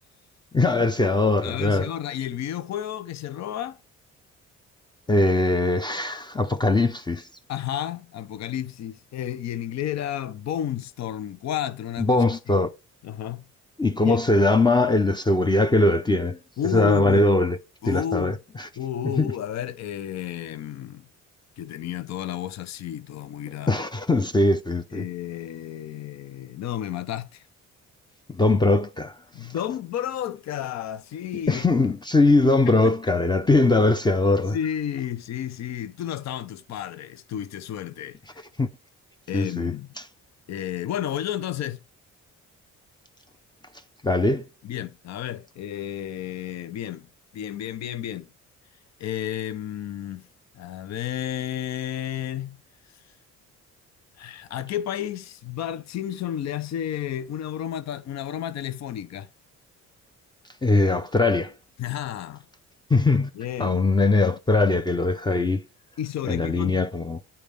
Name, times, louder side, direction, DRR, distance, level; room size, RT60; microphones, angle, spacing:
voice 1, 0.5-1.9 5.1-7.3 12.0-12.7 13.8-16.4 16.7-17.6 17.9-18.7 19.2-19.3 23.7-25.0 28.3-29.1 31.5-34.6 38.6-38.7 39.3-39.7 44.0-44.5 60.6-61.5 62.9-63.3 63.6-65.6 66.3-67.2, left 2 dB, 15° left, 0.6 m, -21 dB
voice 2, 1.4-3.8 7.5-12.6 13.0-13.5 14.0-14.2 16.6-17.3 17.8-18.4 18.8-21.1 21.6-23.8 24.9-27.4 29.3-31.6 32.7-32.9 34.5-38.5 39.3-39.9 40.5-41.8 44.6-47.1 47.3-48.3 49.0-50.3 50.5-52.6 54.2-59.3 61.8-62.4 63.3-63.9 66.0-66.8, left 10 dB, 65° left, 0.7 m, -32 dB
8.9 x 4.3 x 3.4 m
cardioid pair, 90°, 30 cm